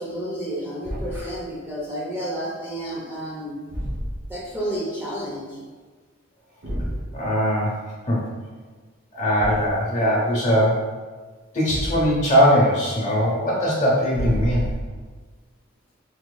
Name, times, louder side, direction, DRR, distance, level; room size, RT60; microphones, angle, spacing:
voice 1, 0.0-3.6 4.3-5.6, right 1 dB, 10° right, -6 dB, 0.5 m, -31 dB
Thump thud, 0.8-1.3 3.7-4.4 6.6-7.1 9.4-9.8 11.7-12.3 14.1-15.1, equal, 65° right, 1.1 m, -29 dB
voice 2, 7.1-7.8 8.1-8.3 9.1-10.9 11.5-14.7, equal, 35° left, -4 dB, 0.9 m, -20 dB
4.0 x 3.0 x 2.2 m, 1.4 s
head